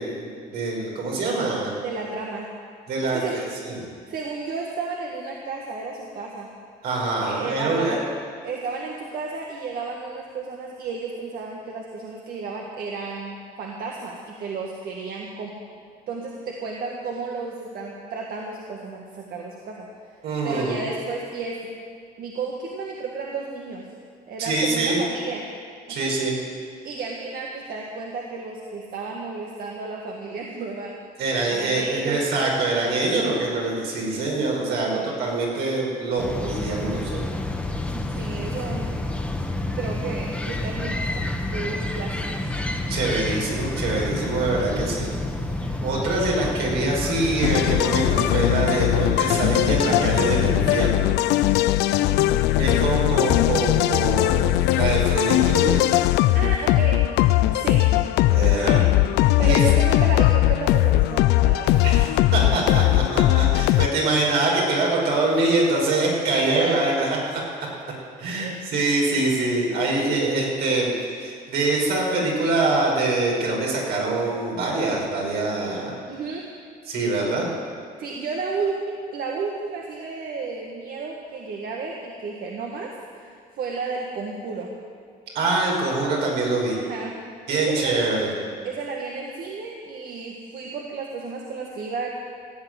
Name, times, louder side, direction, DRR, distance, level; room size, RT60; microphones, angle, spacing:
voice 1, 0.0-1.8 2.9-3.8 6.8-8.0 20.2-20.9 24.4-25.0 25.9-26.4 31.2-37.2 42.9-45.1 45.8-51.1 52.6-55.8 58.3-58.9 59.4-59.6 61.8-67.4 68.2-70.9 71.2-75.9 76.9-77.5 85.3-86.8 87.5-88.3, right 2 dB, 80° right, -2 dB, 5.2 m, -24 dB
voice 2, 1.8-2.5 3.0-3.4 4.1-6.5 7.2-8.0 8.4-15.6 16.1-19.9 20.4-21.8 22.2-23.9 24.3-25.5 25.9-26.2 26.8-31.0 31.5-32.3 33.1-33.4 34.9-35.1 37.9-38.9 39.7-42.4 45.6-45.7 51.9-53.1 56.1-57.1 57.5-57.9 58.4-58.8 59.1-61.9 66.3-66.9 68.3-68.6 76.1-76.5 78.0-84.7 86.7-87.2 87.5-88.1 88.6-92.1, right 4 dB, 60° right, -1 dB, 1.7 m, -32 dB
sound 1, 36.2-50.9, left 2 dB, 5° left, 1.5 m, -29 dB
sound 2, 47.4-63.9, left 16 dB, 85° left, 0.5 m, -19 dB
16.0 x 8.0 x 9.4 m, 2.1 s
cardioid pair, 110°, 17 cm